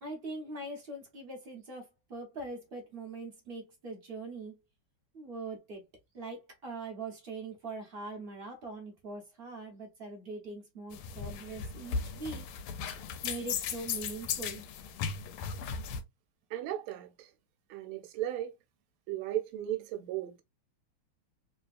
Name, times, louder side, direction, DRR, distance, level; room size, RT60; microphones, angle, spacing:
voice 1, 0.0-4.5 5.1-5.8 6.1-12.5 13.2-14.6, right 3 dB, 50° right, 0.7 m, -42 dB
sound 1, 10.9-16.0, left 6 dB, 85° left, 1.4 m, -37 dB
voice 2, 16.5-17.3 17.7-18.5 19.1-20.3, right 12 dB, 85° right, 1.5 m, -35 dB
3.5 x 2.8 x 2.4 m
omnidirectional pair, 2.3 m